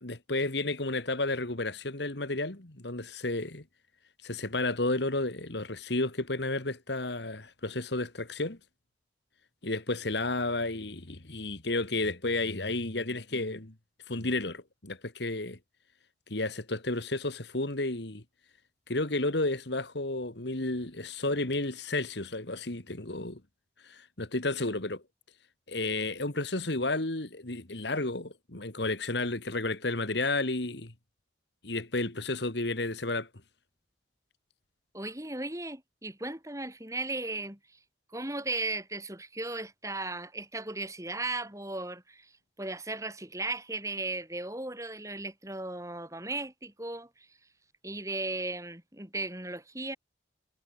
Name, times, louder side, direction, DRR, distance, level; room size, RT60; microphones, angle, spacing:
voice 1, 0.0-3.6 4.2-8.6 9.6-13.7 14.1-15.6 16.3-18.2 18.9-23.4 23.8-25.0 25.7-30.9 31.6-33.3, left 2 dB, 65° left, 2.2 m, -32 dB
voice 2, 34.9-37.6 38.1-42.3 42.6-47.3 47.8-50.0, right 2 dB, 15° right, 5.7 m, -36 dB
head